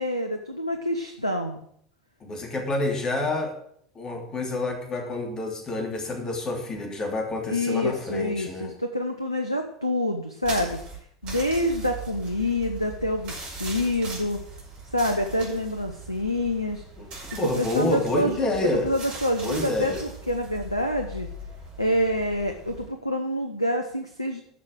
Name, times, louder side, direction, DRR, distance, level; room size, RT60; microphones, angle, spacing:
voice 1, 0.0-1.6 7.5-10.8 11.2-14.4 14.8-16.8 17.4-18.5 18.8-21.3 21.8-24.4, left 1 dB, 90° left, 4 dB, 0.8 m, -27 dB
voice 2, 2.2-3.6 3.9-8.7 17.0-18.9 19.4-20.0, left 2 dB, 25° left, 2 dB, 3.3 m, -28 dB
sound 1, 10.4-22.9, right 3 dB, 45° right, 5.2 m, -40 dB
11.0 x 6.5 x 7.8 m, 0.68 s
figure-of-eight pair, 75°, 2 cm